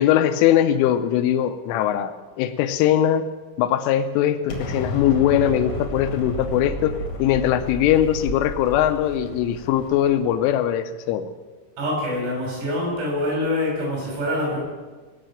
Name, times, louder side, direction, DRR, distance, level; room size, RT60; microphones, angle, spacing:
voice 1, 0.0-3.3 3.6-11.3, left 11 dB, 80° left, 9 dB, 3.1 m, -21 dB
Explosion, 4.5-10.5, left 1 dB, 55° left, 1.5 m, -32 dB
voice 2, 11.8-14.6, left 1 dB, 75° right, -3 dB, 9.1 m, -25 dB
19.0 x 6.7 x 8.9 m, 1.3 s
omnidirectional pair, 5.9 m